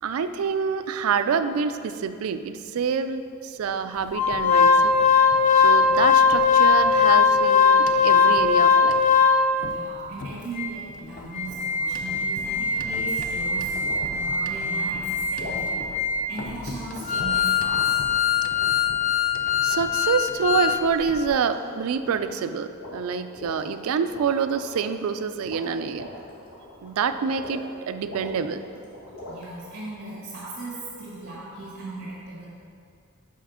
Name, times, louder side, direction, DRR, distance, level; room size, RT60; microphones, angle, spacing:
voice 1, 0.0-4.9 5.6-9.0 19.6-26.1 26.8-28.6, right 6 dB, 80° right, 11 dB, 0.3 m, -27 dB
Organ, 4.1-9.7 10.2-10.3 10.6-10.7 11.2-20.8 21.1-21.2, left 5 dB, 40° left, 0.4 m, -20 dB
voice 2, 9.6-15.9 16.3-18.0 29.3-32.5, right 2 dB, 50° right, -9 dB, 1.6 m, -38 dB
sound 1, 12.6-12.9 13.8-14.1 15.4-15.7 17.1-19.0 19.6-20.1 20.4-20.8 21.2-21.6 21.9-22.4 22.7-23.6 24.1-24.9 25.3-27.7 28.0-29.5, left 1 dB, 75° left, 1.5 m, -42 dB
5.6 x 5.0 x 4.9 m, 2.4 s
head